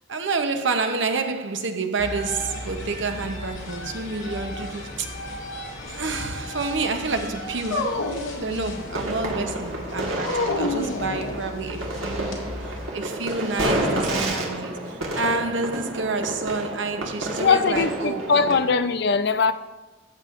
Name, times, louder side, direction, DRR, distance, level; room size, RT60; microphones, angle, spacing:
voice 1, 0.1-5.2 5.9-18.6, right 3 dB, 65° right, 0.8 m, -29 dB
sound 1, 2.0-12.9, left 1 dB, 70° left, 2.2 m, -36 dB
Dog, 7.7-9.1 10.2-11.8, left 2 dB, 90° left, 0.8 m, -28 dB
sound 2, 8.9-18.7, right 1 dB, 90° right, 1.6 m, -30 dB
voice 2, 17.4-19.5, left 5 dB, 55° left, 0.5 m, -21 dB
13.5 x 7.4 x 2.5 m
head